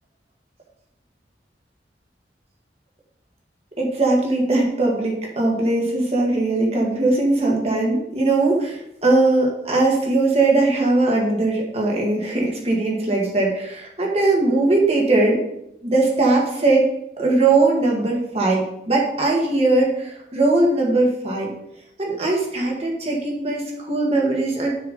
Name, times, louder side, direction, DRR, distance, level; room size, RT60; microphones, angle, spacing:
voice 1, 3.8-15.4 15.8-16.9 17.2-21.5 22.0-24.7, right 2 dB, 35° right, -2 dB, 1.9 m, -20 dB
7.2 x 4.7 x 5.0 m, 0.79 s
head